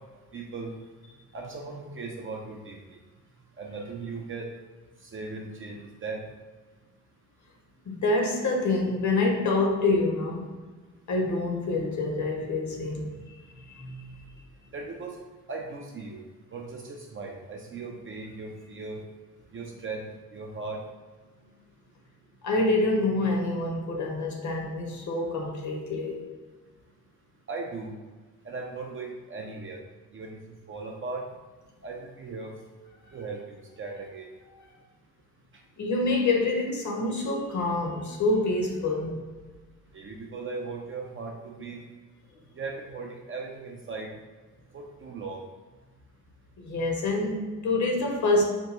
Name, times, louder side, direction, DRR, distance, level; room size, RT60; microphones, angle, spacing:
voice 1, 0.3-0.7 1.3-3.0 3.6-4.5 5.0-6.2 14.7-15.2 15.5-16.2 16.5-19.0 19.5-20.1 20.3-20.8 27.5-27.9 28.4-29.8 30.1-30.4 30.7-31.2 31.8-32.5 33.1-34.2 39.9-41.8 42.5-44.1 44.7-45.4, right 3 dB, 25° right, 0 dB, 0.6 m, -38 dB
voice 2, 7.8-10.5 11.1-13.1 13.6-14.2 22.4-26.2 35.8-39.2 46.6-48.4, left 2 dB, 35° left, 1 dB, 1.0 m, -26 dB
4.5 x 2.6 x 2.6 m, 1.3 s
figure-of-eight pair, 50°, 48 cm